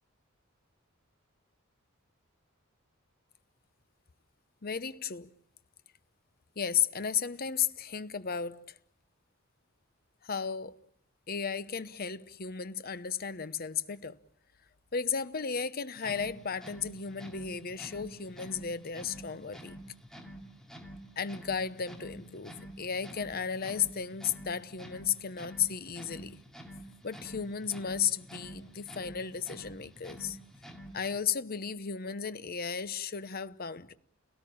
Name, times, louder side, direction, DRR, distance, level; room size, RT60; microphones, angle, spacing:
voice 1, 4.6-5.3 6.6-8.8 10.2-10.8 11.3-14.2 14.9-19.8 21.2-26.4 27.0-30.4 30.9-33.9, left 7 dB, 45° left, 0.9 m, -34 dB
sound 1, 15.9-31.2, right 1 dB, 5° left, 2.6 m, -48 dB
29.0 x 18.0 x 8.6 m
head